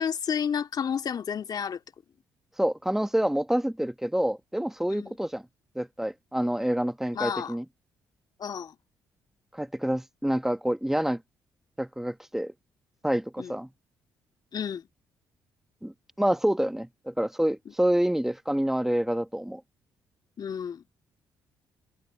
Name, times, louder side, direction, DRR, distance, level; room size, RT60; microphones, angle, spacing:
voice 1, 0.0-1.8 4.9-5.1 7.1-7.6 8.4-8.8 13.4-13.5 14.5-14.9 17.7-17.8 20.4-20.8, left 7 dB, 50° left, 2.4 m, -31 dB
voice 2, 2.6-5.4 5.8-7.6 9.5-11.2 11.8-12.5 13.0-13.7 15.8-19.6, equal, 5° right, 1.7 m, -27 dB
open air
hypercardioid pair, 45°, 9 cm